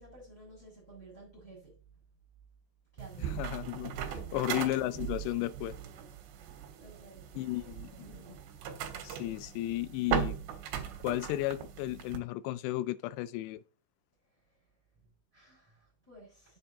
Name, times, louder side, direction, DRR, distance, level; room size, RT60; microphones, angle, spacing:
voice 1, 0.0-1.8 2.9-3.4 4.1-4.4 5.9-6.1 6.8-7.5 7.9-8.5 14.2-16.6, right 2 dB, 5° left, 6.1 m, -54 dB
sound 1, 3.0-12.2, right 9 dB, 75° right, 3.5 m, -39 dB
voice 2, 3.4-4.0 4.3-5.8 7.4-8.2 9.0-10.4 11.0-13.6, left 15 dB, 80° left, 2.5 m, -34 dB
8.8 x 8.1 x 4.1 m
omnidirectional pair, 5.4 m